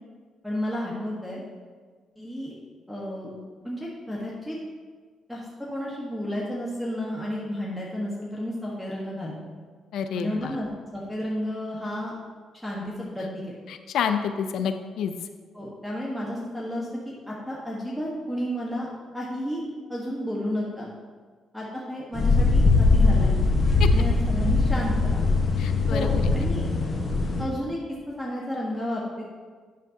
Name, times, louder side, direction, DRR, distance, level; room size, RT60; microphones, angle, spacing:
voice 1, 0.4-1.4 2.2-2.6 2.9-3.3 3.6-4.6 5.3-5.4 5.7-9.5 10.1-12.1 12.6-13.5 15.5-18.9 19.1-19.6 19.9-20.9 21.5-23.3 23.9-25.3 25.9-26.6 27.4-27.8 28.2-29.2, equal, ahead, -5 dB, 1.3 m, -32 dB
voice 2, 9.9-10.6 13.7-15.1 23.8-23.9 25.6-26.3, left 7 dB, 75° left, 7 dB, 0.4 m, -29 dB
sound 1, 22.1-27.4, left 3 dB, 40° left, 1.2 m, -21 dB
9.3 x 7.1 x 2.8 m, 1.5 s
cardioid pair, 90°, 0 cm